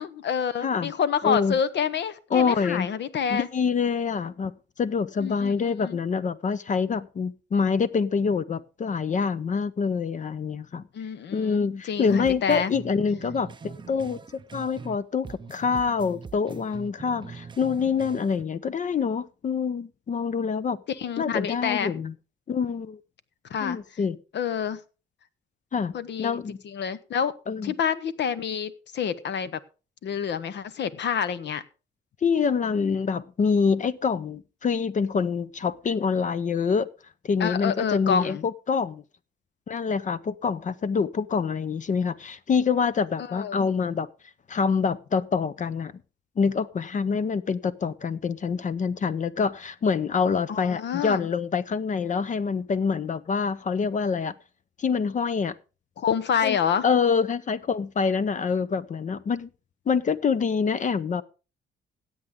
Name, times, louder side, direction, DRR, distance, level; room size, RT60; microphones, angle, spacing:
voice 1, 0.0-3.5 5.2-5.5 5.8-6.0 10.9-12.7 20.9-21.9 23.5-23.8 24.3-24.8 25.9-27.3 27.6-29.6 30.0-31.6 37.4-38.5 43.3-43.6 50.5-51.3 56.0-56.8, left 7 dB, 60° left, 0.9 m, -28 dB
voice 2, 0.6-0.9 1.2-1.6 2.3-2.9 3.3-4.5 4.8-10.8 11.3-20.8 21.2-22.1 22.5-23.0 23.6-24.2 25.7-25.9 26.2-26.6 27.5-27.7 32.2-36.9 37.2-39.0 39.7-44.1 44.5-45.9 46.4-54.3 54.8-55.5 56.4-56.6 56.8-59.5 59.9-61.2, left 5 dB, 40° left, 0.6 m, -26 dB
sound 1, 12.1-15.0 15.2-18.4, right 5 dB, 25° right, 0.4 m, -42 dB
16.0 x 8.1 x 3.6 m
cardioid pair, 90°, 20 cm